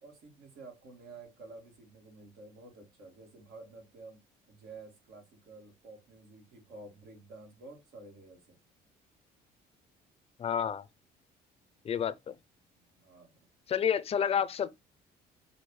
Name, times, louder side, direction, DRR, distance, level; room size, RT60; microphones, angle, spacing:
voice 1, 0.0-4.2 4.5-8.6 12.8-13.4, right 3 dB, 85° right, 2.0 m, -51 dB
voice 2, 10.4-10.9 11.8-12.3 13.7-14.7, left 8 dB, 35° left, 0.5 m, -29 dB
6.2 x 2.6 x 3.1 m
cardioid pair, 110°, 17 cm